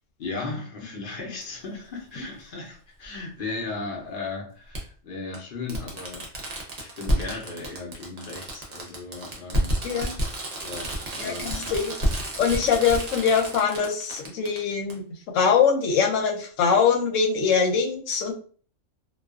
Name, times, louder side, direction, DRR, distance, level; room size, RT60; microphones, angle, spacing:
voice 1, 0.2-6.3 6.7-9.7 10.6-11.7, left 3 dB, 50° left, 0 dB, 0.7 m, -36 dB
Fireworks, 1.4-1.5 3.0-3.1 4.7-4.8 5.3-5.4 5.7-14.6 14.9-15.0, right 1 dB, 45° right, 0.6 m, -29 dB
voice 2, 9.8-10.2 11.2-11.9 12.4-15.0 15.3-18.3, left 6 dB, 85° left, 3 dB, 1.0 m, -23 dB
2.3 x 2.3 x 2.3 m, 0.43 s
omnidirectional pair, 1.3 m